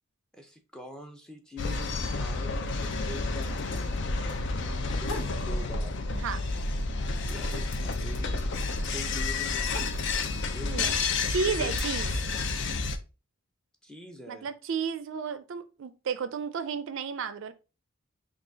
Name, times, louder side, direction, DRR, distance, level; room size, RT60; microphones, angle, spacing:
voice 1, 0.3-6.0 7.3-9.8 10.5-11.0 11.4-11.7 12.1-12.4 13.8-14.5, left 1 dB, 5° left, 0.5 m, -45 dB
sound 1, 1.6-13.0, left 3 dB, 55° left, 0.5 m, -30 dB
sound 2, 4.7-5.4 5.8-6.5 6.8-10.4 11.1-11.8, left 2 dB, 80° left, 1.0 m, -42 dB
voice 2, 6.1-6.4 10.7-11.0 11.3-12.1 14.3-17.5, right 5 dB, 60° right, 0.4 m, -33 dB
3.8 x 2.4 x 3.9 m
head